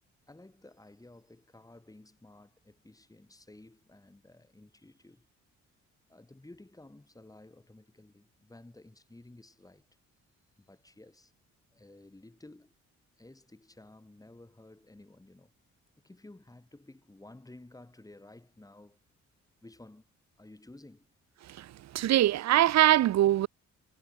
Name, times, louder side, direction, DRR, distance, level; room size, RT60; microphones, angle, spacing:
voice 1, 0.3-5.3 6.1-9.9 10.6-11.3 11.7-12.7 13.2-15.5 16.0-19.0 19.6-20.1 20.4-21.1 22.0-22.1, left 2 dB, 10° left, 5.8 m, -54 dB
voice 2, 21.9-23.5, right 13 dB, 65° right, 0.8 m, -22 dB
cardioid pair, 90°, 30 cm